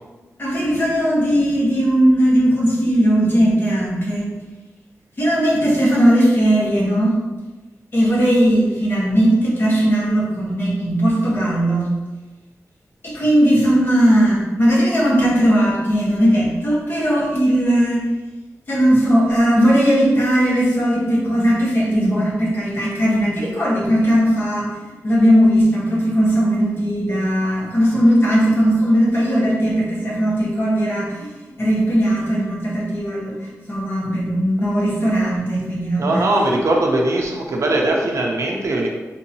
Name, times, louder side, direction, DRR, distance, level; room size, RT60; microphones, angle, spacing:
voice 1, 0.4-4.3 5.2-7.2 7.9-11.9 13.0-18.0 18.7-24.7 25.0-36.2, equal, 40° left, -6 dB, 1.1 m, -18 dB
voice 2, 36.0-38.9, right 2 dB, 60° right, 0 dB, 0.5 m, -20 dB
3.7 x 2.7 x 2.7 m, 1.2 s
wide cardioid pair, 150°, 6 cm